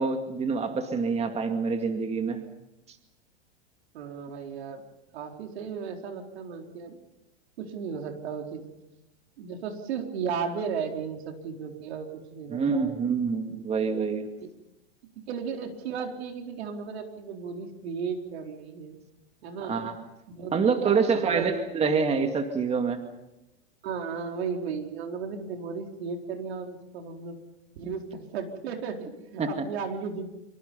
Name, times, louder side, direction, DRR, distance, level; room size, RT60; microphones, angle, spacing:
voice 1, 0.0-2.4 12.5-14.3 19.7-19.9 20.5-23.0 29.4-29.5, right 5 dB, 20° right, 6 dB, 2.2 m, -26 dB
voice 2, 3.9-4.8 5.1-7.0 7.6-8.6 9.4-13.0 14.4-14.5 15.2-19.0 19.4-19.8 20.3-21.4 23.8-27.4 27.7-30.3, right 6 dB, 75° right, 3 dB, 4.4 m, -35 dB
25.5 x 24.5 x 5.5 m, 0.92 s
hypercardioid pair, 130°, 32 cm